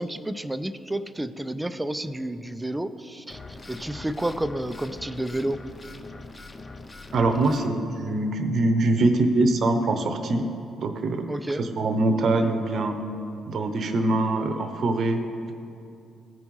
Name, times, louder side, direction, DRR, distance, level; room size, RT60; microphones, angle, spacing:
voice 1, 0.0-3.4 3.7-5.6 11.3-11.6, right 1 dB, 10° right, 12 dB, 0.5 m, -30 dB
sound 1, 3.3-7.7, left 3 dB, 30° left, 0.7 m, -42 dB
voice 2, 7.1-10.5 10.8-11.3 11.6-13.0 13.5-15.2, right 2 dB, 55° right, 7 dB, 0.8 m, -23 dB
15.0 x 5.1 x 3.1 m, 2.5 s
hypercardioid pair, 50°, 0 cm